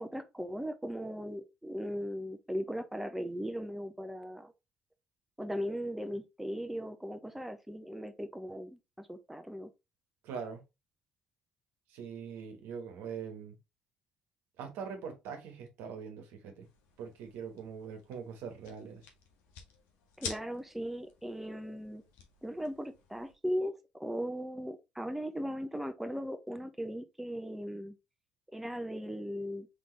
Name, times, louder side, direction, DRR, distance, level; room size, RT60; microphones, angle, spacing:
voice 1, 0.0-4.5 5.4-9.7 20.2-22.0 22.4-27.9 28.5-29.7, equal, 5° right, 0.8 m, -38 dB
voice 2, 10.2-10.6 11.9-13.6 14.6-16.7 17.0-19.0, right 6 dB, 75° right, 1.2 m, -42 dB
sound 1, 16.6-23.3, left 7 dB, 75° left, 1.0 m, -49 dB
3.7 x 3.7 x 3.2 m
hypercardioid pair, 55°, 4 cm